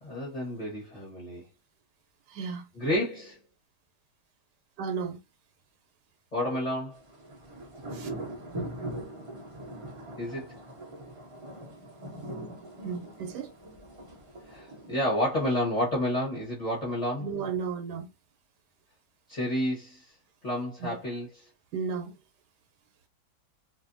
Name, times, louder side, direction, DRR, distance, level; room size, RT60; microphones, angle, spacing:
voice 1, 0.0-1.5 2.7-3.4 6.3-7.0 10.2-10.5 14.5-17.3 19.3-20.1 20.4-21.5, left 1 dB, 30° left, 0.8 m, -30 dB
voice 2, 2.3-2.6 4.8-5.2 7.9-8.1 12.8-13.5 17.2-18.1 21.7-22.1, right 6 dB, 80° right, 1.2 m, -33 dB
sound 1, 7.0-15.1, right 1 dB, 60° right, 0.3 m, -41 dB
2.6 x 2.6 x 2.5 m
omnidirectional pair, 1.8 m